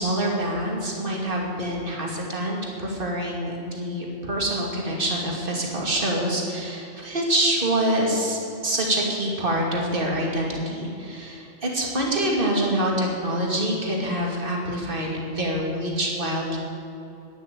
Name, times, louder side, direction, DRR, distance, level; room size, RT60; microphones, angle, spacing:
voice 1, 0.0-16.6, right 1 dB, 40° right, -1 dB, 2.8 m, -26 dB
11.5 x 10.5 x 9.0 m, 2.8 s
omnidirectional pair, 1.3 m